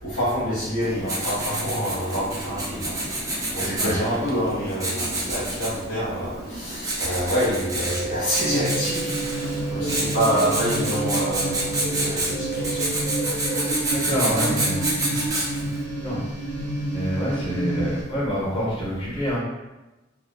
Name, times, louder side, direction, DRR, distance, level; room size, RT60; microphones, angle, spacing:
voice 1, 0.0-2.9 3.5-12.9, equal, 60° left, -12 dB, 0.9 m, -27 dB
Writing, 0.8-15.8, right 1 dB, 20° right, 0.4 m, -29 dB
sound 1, 7.8-15.3, right 2 dB, 80° left, 1.0 m, -33 dB
sound 2, 8.4-18.0, right 2 dB, 90° right, 0.9 m, -30 dB
voice 2, 13.9-15.2 16.0-16.2 16.9-19.4, equal, 30° left, -6 dB, 0.9 m, -26 dB
2.8 x 2.0 x 2.3 m, 1.0 s
head